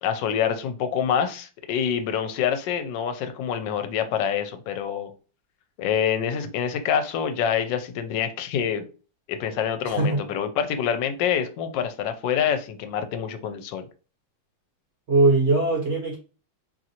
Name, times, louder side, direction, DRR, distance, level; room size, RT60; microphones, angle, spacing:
voice 1, 0.0-5.1 5.8-8.9 9.3-13.8, left 8 dB, 80° left, 1.2 m, -26 dB
voice 2, 9.8-10.2 15.1-16.2, right 3 dB, 50° right, 0.9 m, -20 dB
3.0 x 2.6 x 2.7 m
omnidirectional pair, 2.0 m